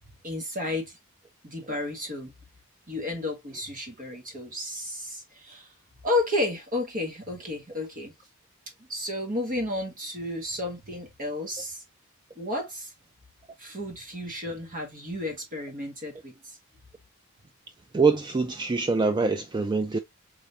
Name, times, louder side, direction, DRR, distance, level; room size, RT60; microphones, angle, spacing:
voice 1, 0.2-1.0 1.4-2.3 2.9-5.7 6.0-8.1 8.9-11.8 12.4-12.9 13.6-16.6, left 2 dB, 40° right, 1.3 m, -32 dB
voice 2, 17.9-20.0, right 4 dB, 20° right, 0.3 m, -24 dB
4.4 x 3.4 x 2.7 m
head